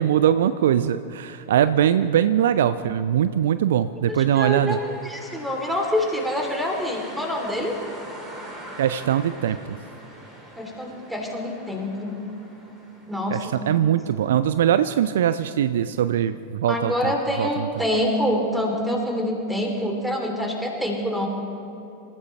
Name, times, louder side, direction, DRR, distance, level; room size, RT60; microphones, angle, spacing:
voice 1, 0.0-4.8 8.8-9.8 13.3-17.7, right 10 dB, 60° right, 13 dB, 0.4 m, -21 dB
voice 2, 4.1-7.7 10.6-12.2 13.1-13.6 16.7-21.3, left 1 dB, 5° right, 1 dB, 3.2 m, -26 dB
sound 1, 4.4-14.2, right 1 dB, 20° right, 4.0 m, -43 dB
27.0 x 15.0 x 3.3 m, 2.9 s
figure-of-eight pair, 90°, 0 cm